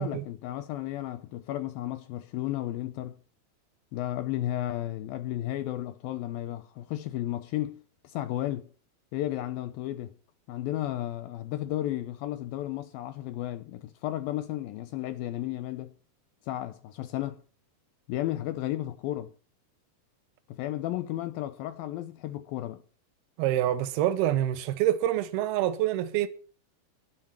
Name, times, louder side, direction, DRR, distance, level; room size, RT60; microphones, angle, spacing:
voice 1, 0.0-3.2 3.9-8.7 9.1-10.1 10.5-15.9 16.4-17.4 18.1-19.3 20.5-22.8, left 14 dB, 75° left, 2.3 m, -33 dB
voice 2, 23.4-26.3, right 12 dB, 75° right, 2.9 m, -26 dB
11.0 x 11.0 x 7.4 m
omnidirectional pair, 4.6 m